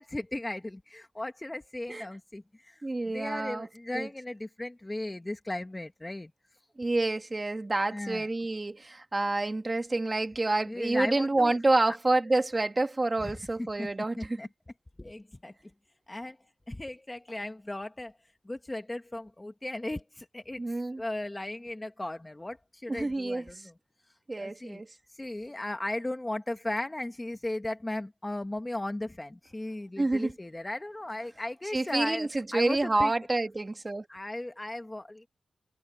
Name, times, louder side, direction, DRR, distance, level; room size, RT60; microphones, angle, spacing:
voice 1, 0.0-6.3 7.9-8.3 10.7-11.6 11.9-12.0 13.2-13.3 13.8-13.9 14.2-14.5 15.0-15.5 16.1-16.4 16.7-18.1 18.4-20.6 21.0-23.7 24.4-24.8 25.1-33.1 34.1-35.3, left 1 dB, 20° left, 1.4 m, -36 dB
voice 2, 2.8-3.7 3.9-4.1 6.8-14.4 20.6-21.0 22.9-23.7 24.3-24.9 30.0-30.3 31.7-34.1, right 2 dB, 30° right, 1.9 m, -28 dB
cardioid pair, 75°, 0 cm